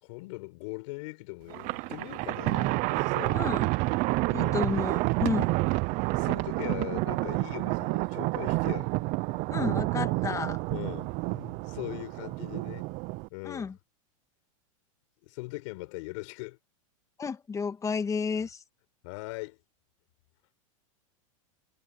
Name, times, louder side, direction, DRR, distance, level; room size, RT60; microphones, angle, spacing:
voice 1, 0.0-3.4 4.3-4.6 6.1-8.9 10.7-12.9 13.3-13.7 15.2-16.6 19.0-19.6, left 24 dB, 60° left, 4.8 m, -40 dB
Thunder, 1.5-13.3, right 23 dB, 45° right, 0.8 m, -29 dB
voice 2, 3.3-3.7 4.3-5.6 9.5-10.6 13.4-13.8 17.2-18.6, left 5 dB, 15° left, 1.8 m, -31 dB
hypercardioid pair, 120°, 18 cm